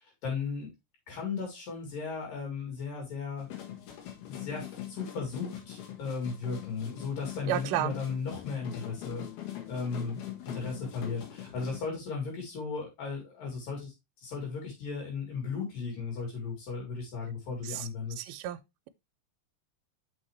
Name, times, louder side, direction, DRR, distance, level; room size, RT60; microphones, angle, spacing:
voice 1, 0.2-0.7 1.1-3.5 4.3-9.2 9.7-13.9 14.2-18.2, left 5 dB, 65° left, 4.9 m, -36 dB
sound 1, 3.4-11.8, left 12 dB, 80° left, 3.3 m, -42 dB
voice 2, 7.5-7.9 17.7-17.9 18.2-18.6, right 13 dB, 85° right, 2.4 m, -31 dB
6.3 x 6.2 x 3.2 m
omnidirectional pair, 4.4 m